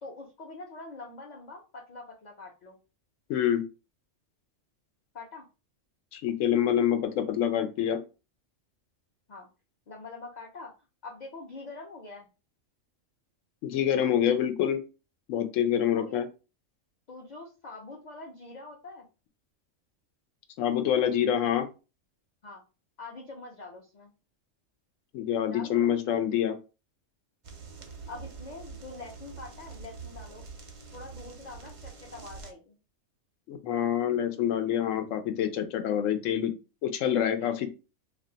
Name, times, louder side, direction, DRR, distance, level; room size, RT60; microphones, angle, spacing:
voice 1, 0.0-2.8 5.1-5.5 9.3-9.5 9.9-10.7 11.0-12.3 15.9-16.2 17.1-19.1 22.4-22.6 23.0-24.1 25.5-25.9 28.1-30.5 30.9-32.8 37.4-37.5, left 3 dB, 45° left, -2 dB, 0.6 m, -44 dB
voice 2, 3.3-3.6 6.1-8.0 13.6-14.8 15.3-16.3 20.6-21.7 25.1-26.6 33.5-36.5 36.8-37.7, left 10 dB, 80° left, 9 dB, 0.9 m, -26 dB
sound 1, 27.4-32.5, right 5 dB, 55° right, 0.3 m, -45 dB
2.4 x 2.2 x 3.8 m, 0.31 s
omnidirectional pair, 1.3 m